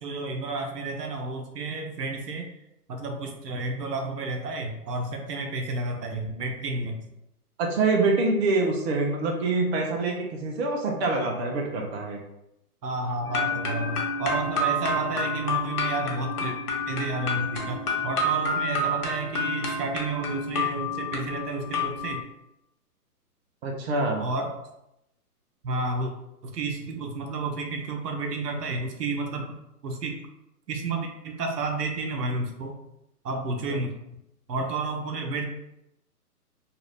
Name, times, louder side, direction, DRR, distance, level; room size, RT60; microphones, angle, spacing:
voice 1, 0.0-2.5 2.9-7.0 12.8-16.6 16.9-22.2 24.2-24.5 25.6-26.1 26.4-29.6 29.8-30.2 30.7-32.8 33.2-34.0 34.5-35.5, right 3 dB, 90° right, 3 dB, 0.8 m, -31 dB
voice 2, 7.6-12.2 23.6-24.3, right 3 dB, 45° right, 1 dB, 0.6 m, -25 dB
sound 1, 13.3-22.2, left 1 dB, 75° left, 1.1 m, -29 dB
2.9 x 2.5 x 3.2 m, 0.85 s
hypercardioid pair, 145°, 47 cm